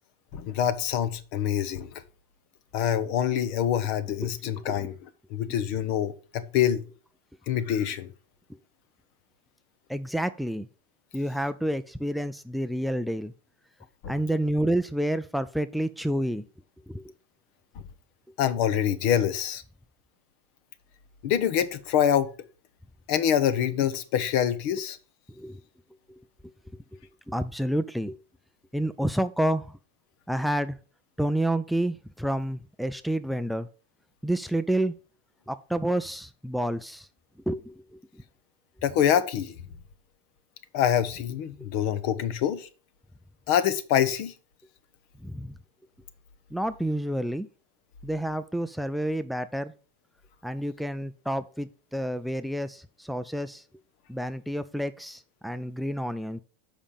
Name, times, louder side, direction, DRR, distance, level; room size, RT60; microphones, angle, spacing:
voice 1, 0.3-1.9 2.7-4.9 5.3-6.8 7.5-8.1 14.0-14.1 18.4-19.6 21.2-22.3 23.1-25.0 38.8-39.5 40.7-42.7 43.5-44.3, left 9 dB, 55° left, 0.9 m, -25 dB
voice 2, 4.6-4.9 9.9-10.7 11.1-13.3 14.1-16.4 16.9-17.0 25.4-25.6 26.1-26.2 27.3-28.2 28.7-29.7 30.3-30.8 31.2-33.7 34.2-34.9 35.5-37.1 37.5-38.0 45.2-45.5 46.5-47.5 48.0-49.7 50.4-53.6 54.1-56.4, right 1 dB, ahead, 0.4 m, -29 dB
7.1 x 5.1 x 5.7 m
supercardioid pair, 140°, 0 cm